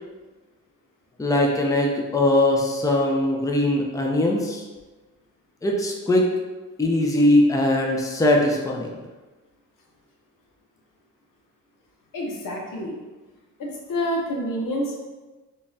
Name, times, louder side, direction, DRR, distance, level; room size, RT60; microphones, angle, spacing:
voice 1, 1.2-4.6 5.6-6.3 6.8-8.9, left 1 dB, 10° left, 0 dB, 0.5 m, -21 dB
voice 2, 12.1-13.0 13.6-15.0, equal, 80° left, -1 dB, 0.8 m, -28 dB
3.7 x 2.4 x 2.7 m, 1.2 s
cardioid pair, 70°, 32 cm